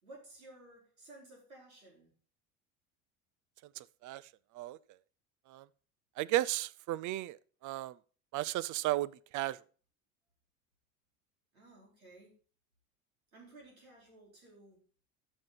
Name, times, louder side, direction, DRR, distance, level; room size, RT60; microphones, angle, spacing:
voice 1, 0.0-2.2 11.5-12.3 13.3-14.8, right 2 dB, 90° right, 4.2 m, -55 dB
voice 2, 3.8-4.2 4.5-4.8 5.5-5.6 6.2-7.4 7.6-7.9 8.3-9.6, right 15 dB, 45° right, 0.6 m, -34 dB
13.0 x 5.4 x 4.0 m
hypercardioid pair, 65°, 41 cm